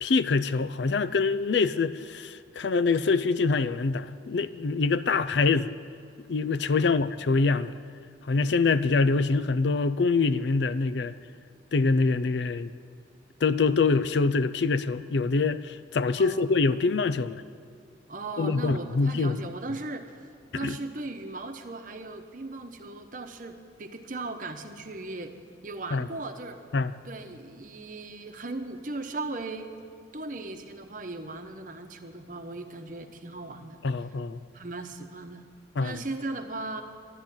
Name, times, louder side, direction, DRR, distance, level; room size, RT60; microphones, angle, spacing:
voice 1, 0.0-5.7 6.3-7.7 8.3-11.2 11.7-12.7 13.4-17.4 18.4-19.4 20.6-20.8 25.9-26.1 26.7-26.9 33.8-34.4 35.8-36.0, left 4 dB, 65° left, 14 dB, 0.5 m, -25 dB
voice 2, 16.2-16.5 18.1-20.1 20.5-25.3 25.6-26.6 27.1-29.8 30.1-33.8 34.5-35.5 35.8-36.8, right 2 dB, 45° right, 6 dB, 1.0 m, -37 dB
12.0 x 10.5 x 9.0 m, 2.4 s
head